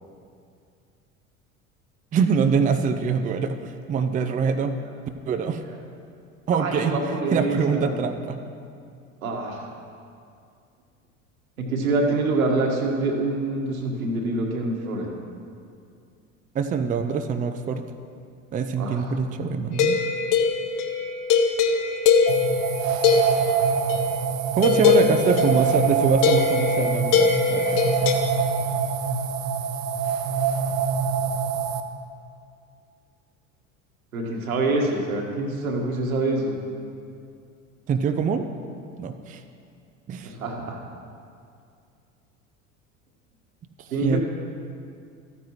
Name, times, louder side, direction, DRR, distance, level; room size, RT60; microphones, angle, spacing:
voice 1, 2.1-4.8 5.3-5.6 6.5-7.0 7.3-8.4 16.5-17.8 18.5-20.0 24.6-28.2 37.9-38.5 39.0-39.4 40.1-40.3 44.0-44.2, right 6 dB, 20° right, 8 dB, 0.5 m, -24 dB
voice 2, 6.5-8.0 9.2-9.7 11.6-15.1 18.8-19.1 34.1-36.6 40.2-40.8 43.9-44.2, right 2 dB, 80° right, 0 dB, 1.7 m, -26 dB
sound 1, 19.7-24.1 24.6-28.1, left 6 dB, 50° left, 1.1 m, -21 dB
sound 2, 22.3-31.8, right 6 dB, 65° right, 0.8 m, -25 dB
13.5 x 9.5 x 3.1 m, 2.4 s
hypercardioid pair, 75°, 41 cm